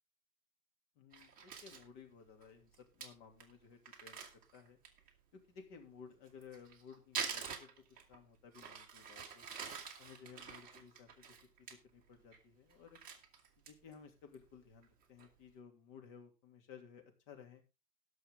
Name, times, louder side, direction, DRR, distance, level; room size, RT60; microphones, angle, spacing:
voice 1, 1.0-4.2 4.5-4.8 5.3-9.4 10.0-13.0 13.7-17.6, left 6 dB, 35° left, 4 dB, 2.8 m, -57 dB
Crumpling crinkling, 1.1-1.8 2.4-2.5 2.7-2.8 3.0-3.1 3.4-3.5 3.8-5.1 6.3-8.2 8.5-11.7 12.1-12.4 12.7-13.9 14.3-14.4 14.8-15.3, right 6 dB, 20° right, 1.9 m, -46 dB
18.5 x 6.4 x 3.7 m, 0.29 s
hypercardioid pair, 135°, 47 cm